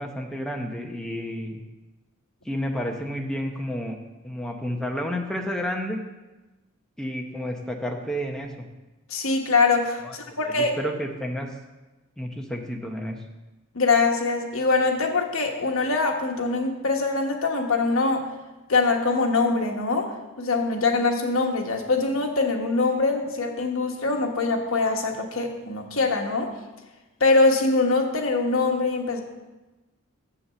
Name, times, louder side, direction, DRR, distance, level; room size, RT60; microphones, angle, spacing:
voice 1, 0.0-1.6 2.4-4.0 4.2-6.0 7.0-8.5 10.0-11.5 12.2-13.2, equal, 5° left, 1 dB, 0.9 m, -31 dB
voice 2, 9.1-10.7 13.7-18.3 18.7-26.5 27.2-29.2, left 3 dB, 70° left, 2 dB, 1.4 m, -23 dB
7.5 x 7.0 x 6.9 m, 1.1 s
head